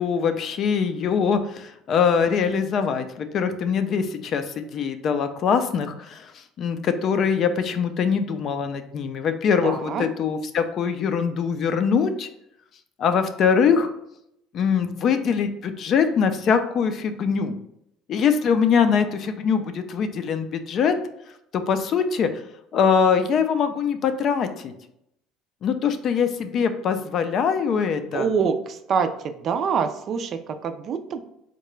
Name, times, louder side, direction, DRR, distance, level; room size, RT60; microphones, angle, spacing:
voice 1, 0.0-12.3 13.0-13.9 14.5-17.5 18.1-21.0 21.5-22.4 22.7-24.7 25.6-28.3, left 6 dB, 50° left, 9 dB, 0.3 m, -23 dB
voice 2, 9.6-10.0 28.1-31.2, right 6 dB, 45° right, 8 dB, 0.3 m, -25 dB
3.7 x 2.2 x 3.1 m, 0.77 s
supercardioid pair, 105°, 0 cm